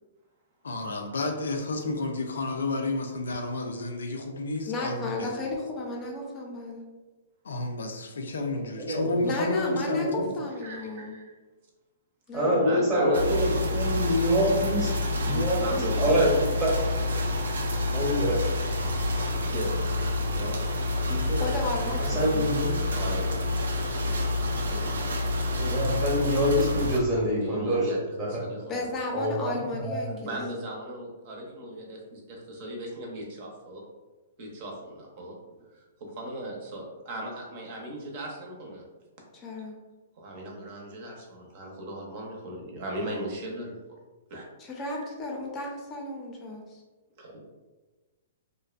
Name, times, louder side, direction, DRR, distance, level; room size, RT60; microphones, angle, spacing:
voice 1, 0.6-5.3 7.4-10.3, left 2 dB, 90° left, 4 dB, 0.4 m, -31 dB
voice 2, 4.7-6.8 9.2-10.1 10.3-11.2 12.3-12.6 21.3-22.6 24.7-25.0 28.7-30.4 39.3-39.8 44.6-46.8, left 2 dB, 25° left, 0 dB, 0.5 m, -34 dB
voice 3, 8.8-9.2 10.0-10.4 12.3-14.9 15.2-15.6 16.0-16.7 17.9-18.3 21.1-21.2 22.0-22.8 25.6-27.9 28.2-28.4 29.1-30.0, equal, 10° right, -7 dB, 0.7 m, -26 dB
voice 4, 10.6-11.3 12.6-14.7 15.2-16.3 17.0-17.3 19.4-19.8 20.2-20.6 22.9-23.5 27.4-28.0 28.2-29.2 30.3-33.8 34.4-35.3 35.7-38.8 40.2-43.8 44.3-44.5 44.9-45.1 47.2-47.4, right 1 dB, 50° right, 0 dB, 0.6 m, -38 dB
sound 1, 13.1-27.0, left 2 dB, 85° right, 0.4 m, -28 dB
2.5 x 2.1 x 2.4 m, 1.2 s
hypercardioid pair, 145°, 0 cm